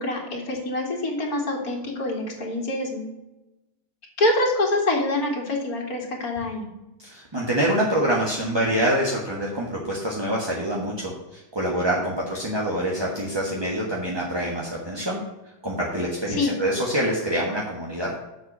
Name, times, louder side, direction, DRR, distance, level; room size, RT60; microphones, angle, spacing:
voice 1, 0.0-3.1 4.2-6.7 16.3-16.5, left 2 dB, 45° left, -1 dB, 2.5 m, -25 dB
voice 2, 7.0-15.2 15.6-18.2, right 1 dB, 15° right, -4 dB, 1.0 m, -26 dB
7.2 x 6.0 x 7.3 m, 1.0 s
omnidirectional pair, 2.3 m